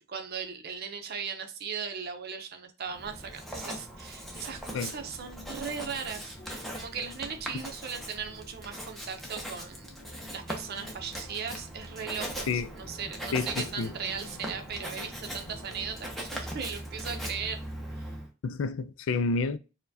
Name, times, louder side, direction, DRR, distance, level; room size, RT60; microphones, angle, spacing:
voice 1, 0.0-17.6 18.0-18.1, right 6 dB, 50° right, 0.6 m, -38 dB
Writing, 2.9-18.3, equal, ahead, 0.6 m, -40 dB
sound 1, 5.5-15.9, equal, 45° left, 1.2 m, -54 dB
voice 2, 13.3-13.9 18.4-19.6, left 4 dB, 65° left, 0.3 m, -29 dB
4.5 x 2.2 x 2.7 m
head